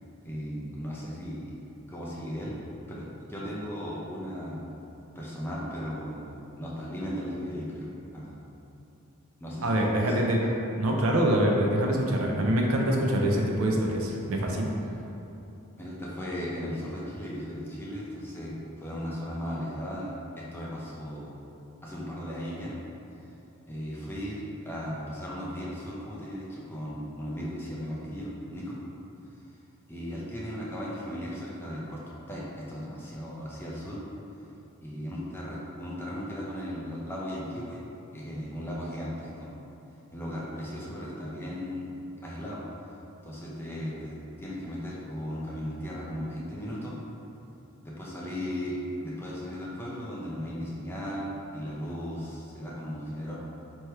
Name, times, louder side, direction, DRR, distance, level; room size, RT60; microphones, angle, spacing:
voice 1, 0.2-1.6 1.9-2.6 2.9-4.6 5.1-8.4 9.4-10.3 15.8-21.3 21.8-22.8 23.7-28.8 29.9-34.0 34.8-37.8 38.1-39.5 40.1-41.9 42.2-42.6 43.2-47.0 47.8-53.3, equal, 10° left, -6 dB, 0.5 m, -36 dB
voice 2, 9.6-10.4 10.8-14.7, right 1 dB, 70° right, 0 dB, 0.5 m, -25 dB
3.2 x 3.0 x 4.4 m, 2.9 s
head